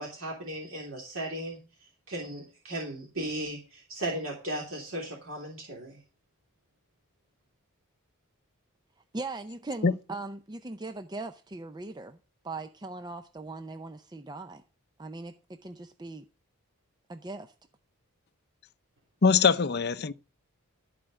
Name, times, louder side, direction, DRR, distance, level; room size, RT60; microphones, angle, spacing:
voice 1, 0.0-1.6 2.1-6.0, right 1 dB, 65° right, 3.2 m, -36 dB
voice 2, 9.1-12.2 12.4-14.6 15.0-15.3 15.6-16.2 17.1-17.5, right 2 dB, 20° right, 0.5 m, -39 dB
voice 3, 19.2-20.1, left 5 dB, 45° left, 0.6 m, -22 dB
13.5 x 4.9 x 7.5 m
head